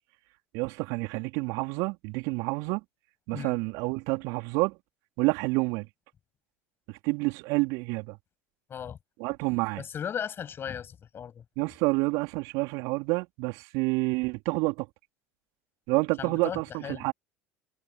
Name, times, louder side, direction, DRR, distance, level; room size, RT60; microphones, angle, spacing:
voice 1, 0.5-2.8 3.3-4.8 5.2-5.9 6.9-8.2 9.2-9.8 11.6-14.9 15.9-17.1, right 26 dB, 60° right, 3.5 m, -28 dB
voice 2, 9.8-11.4 16.2-17.0, left 8 dB, 35° left, 7.4 m, -36 dB
hypercardioid pair, 75°, 7 cm